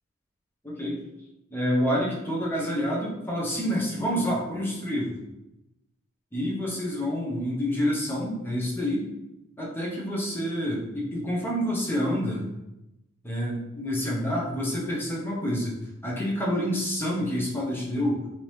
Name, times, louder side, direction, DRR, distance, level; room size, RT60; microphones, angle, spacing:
voice 1, 0.6-1.0 1.5-5.2 6.3-9.1 9.6-12.5 13.2-15.8 16.0-18.2, equal, 10° left, -4 dB, 0.8 m, -28 dB
3.6 x 2.7 x 3.1 m, 0.90 s
head